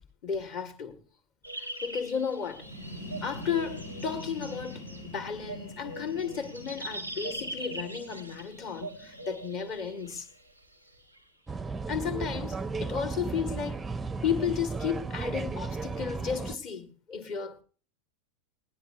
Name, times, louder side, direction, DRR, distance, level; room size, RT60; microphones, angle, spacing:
voice 1, 0.2-1.0 1.6-2.7 3.2-10.3 11.9-13.9 14.2-17.6, left 7 dB, 35° left, 2.1 m, -33 dB
sound 1, 1.4-5.1 5.4-11.2, right 1 dB, 90° left, 2.6 m, -42 dB
sound 2, 2.5-10.1, left 1 dB, 65° left, 5.2 m, -44 dB
sound 3, 11.5-16.6, right 4 dB, 10° right, 0.6 m, -35 dB
19.0 x 19.0 x 2.7 m
figure-of-eight pair, 90°, 0 cm